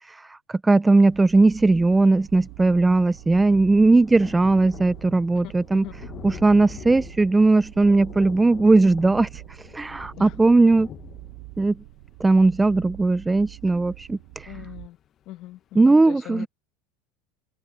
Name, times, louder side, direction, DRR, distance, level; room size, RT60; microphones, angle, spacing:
voice 1, 0.1-5.8 6.2-9.4 9.7-10.9 11.6-11.8 12.2-14.5 15.8-16.5, right 3 dB, 10° right, 0.4 m, -18 dB
sound 1, 1.0-14.9, right 21 dB, 65° right, 2.2 m, -44 dB
Thunder, 1.6-1.7 1.9-14.5 15.0-15.1 15.4-15.5, left 10 dB, 35° left, 1.2 m, -45 dB
voice 2, 14.5-15.0 15.3-16.5, left 15 dB, 50° left, 1.1 m, -41 dB
supercardioid pair, 145°, 0 cm